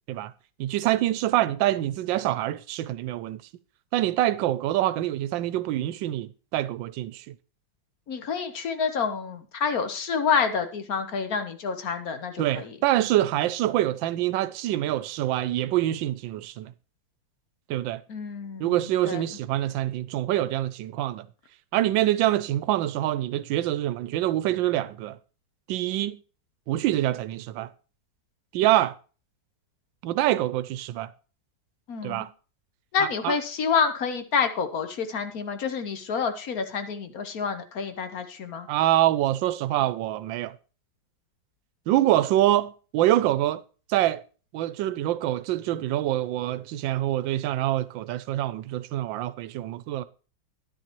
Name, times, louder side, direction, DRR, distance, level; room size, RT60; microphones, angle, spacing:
voice 1, 0.6-3.4 3.9-7.3 12.4-16.7 17.7-18.0 18.6-21.3 21.7-25.2 25.7-26.2 26.7-27.7 28.5-28.9 30.0-31.1 32.0-32.3 33.0-33.3 38.7-40.5 41.9-43.6 43.9-44.2 44.5-50.0, right 14 dB, 80° right, 1.3 m, -25 dB
voice 2, 8.1-12.7 18.1-18.8 19.0-19.2 31.9-32.3 32.9-38.7, left 6 dB, 55° left, 1.3 m, -28 dB
11.0 x 10.0 x 3.0 m
omnidirectional pair, 2.0 m